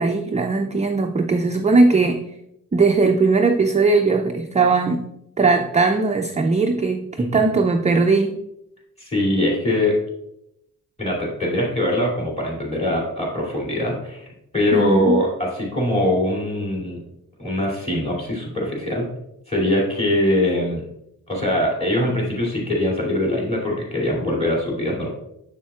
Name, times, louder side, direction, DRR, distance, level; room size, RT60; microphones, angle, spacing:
voice 1, 0.0-2.2 2.7-5.1 5.4-8.4 14.7-15.2, right 3 dB, 20° right, 3 dB, 0.4 m, -19 dB
voice 2, 9.0-9.9 11.0-14.2 14.5-17.0 17.4-19.1 19.5-20.8 21.3-25.1, left 1 dB, 15° left, -3 dB, 2.7 m, -22 dB
7.2 x 7.1 x 2.4 m, 0.81 s
wide cardioid pair, 115°, 36 cm